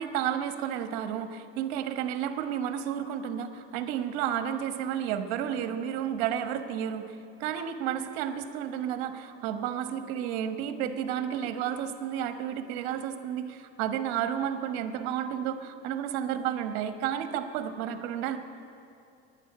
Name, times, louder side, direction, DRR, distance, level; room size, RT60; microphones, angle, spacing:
voice 1, 0.0-18.4, right 9 dB, 65° right, 9 dB, 1.3 m, -32 dB
11.5 x 10.0 x 9.7 m, 2.6 s
supercardioid pair, 120°, 31 cm